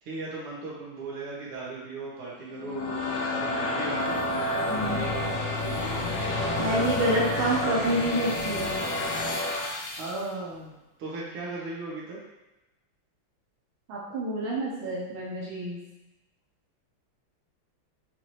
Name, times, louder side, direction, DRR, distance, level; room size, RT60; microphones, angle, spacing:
voice 1, 0.0-4.3 4.8-6.1 6.6-7.6 10.0-12.2, right 3 dB, 90° right, -5 dB, 2.1 m, -37 dB
sound 1, 2.5-10.2, left 2 dB, 75° left, 1.4 m, -29 dB
voice 2, 4.7-5.0 6.6-8.8 13.9-15.8, right 1 dB, 70° right, -5 dB, 1.7 m, -28 dB
6.0 x 2.6 x 3.0 m, 0.99 s
omnidirectional pair, 2.4 m